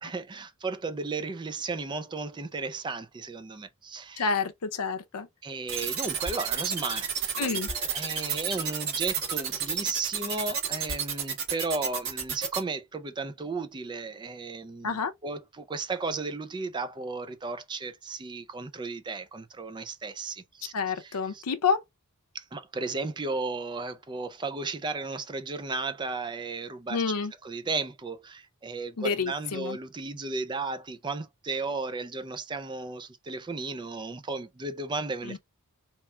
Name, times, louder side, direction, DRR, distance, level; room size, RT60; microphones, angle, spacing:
voice 1, 0.0-4.3 5.4-21.4 22.3-27.0 27.4-35.4, right 3 dB, 20° right, 0.3 m, -34 dB
voice 2, 4.2-5.3 7.4-7.7 14.8-15.1 20.7-21.8 26.9-27.3 29.0-29.8 35.2-35.4, left 5 dB, 90° left, 0.6 m, -28 dB
sound 1, 5.7-12.6, right 6 dB, 60° right, 1.4 m, -30 dB
2.9 x 2.3 x 4.2 m
head